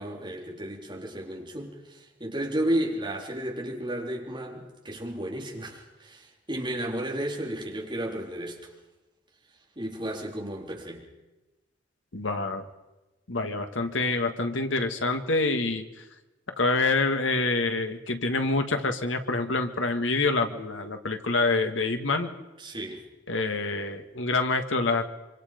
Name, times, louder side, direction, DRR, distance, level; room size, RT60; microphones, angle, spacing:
voice 1, 0.0-8.6 9.8-11.0 22.6-23.0, right 1 dB, 25° right, -1 dB, 3.8 m, -33 dB
voice 2, 12.1-12.6 13.3-15.8 16.6-22.3 23.3-25.0, left 3 dB, 80° left, 6 dB, 1.8 m, -26 dB
25.0 x 25.0 x 5.2 m, 1.1 s
head